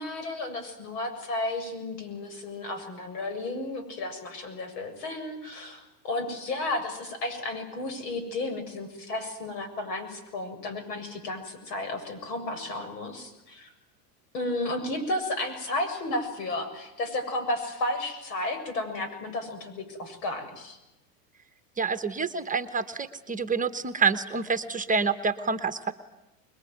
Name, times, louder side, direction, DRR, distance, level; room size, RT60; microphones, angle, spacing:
voice 1, 0.0-13.7 14.3-20.8, left 2 dB, 70° left, 9 dB, 7.3 m, -33 dB
voice 2, 21.8-25.9, right 5 dB, 15° right, 10 dB, 1.2 m, -27 dB
26.0 x 21.5 x 9.4 m, 0.96 s
supercardioid pair, 120°, 50 cm